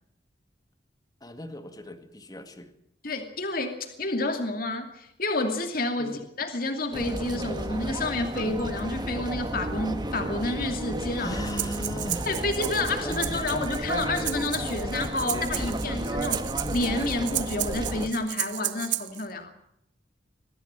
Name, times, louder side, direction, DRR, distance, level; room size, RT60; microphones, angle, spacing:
voice 1, 1.2-2.7 6.0-6.2 11.2-12.3 13.0-13.5, left 1 dB, 20° left, 8 dB, 1.9 m, -37 dB
voice 2, 3.0-11.4 12.3-19.5, left 2 dB, 55° left, 6 dB, 2.6 m, -30 dB
sound 1, 6.9-18.1, right 1 dB, 25° right, 1.5 m, -32 dB
Breathing, 11.4-19.2, right 15 dB, 80° right, 0.8 m, -34 dB
22.5 x 15.0 x 8.9 m, 0.74 s
head